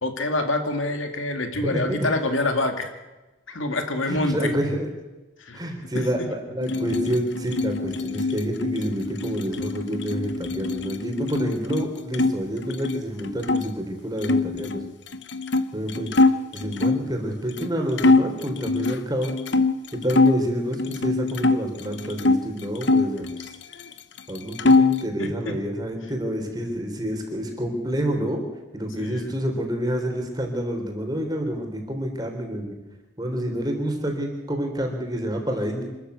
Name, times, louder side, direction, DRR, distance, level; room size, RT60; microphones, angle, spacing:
voice 1, 0.0-2.9 3.5-4.5 5.4-5.6 6.2-6.3 25.2-25.5 29.0-29.3, left 2 dB, 80° left, 6 dB, 2.3 m, -26 dB
voice 2, 1.5-2.1 4.0-4.9 5.5-14.8 15.7-16.1 16.5-19.3 19.9-23.5 24.3-28.4 28.7-32.7 33.2-35.8, equal, 20° right, 3 dB, 3.8 m, -28 dB
sound 1, 6.6-12.3 12.6-13.6 14.2-17.1 17.6-17.7 18.0-20.4 20.8-22.4 22.8-23.9 24.2-25.1, left 3 dB, 60° left, 1.0 m, -23 dB
26.0 x 13.5 x 8.3 m, 1.1 s
head